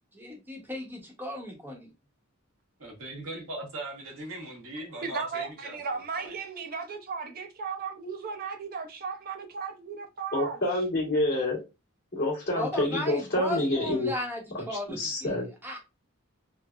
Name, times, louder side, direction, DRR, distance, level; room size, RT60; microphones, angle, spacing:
voice 1, 0.1-1.9 12.5-15.8, left 1 dB, 10° right, 0.8 m, -36 dB
voice 2, 2.8-6.4, right 1 dB, 75° right, 1.1 m, -40 dB
voice 3, 5.0-10.6, right 5 dB, 45° right, 0.5 m, -36 dB
voice 4, 10.3-11.6 12.1-14.1 14.7-15.5, left 1 dB, 45° left, 1.6 m, -28 dB
3.6 x 2.0 x 2.3 m
head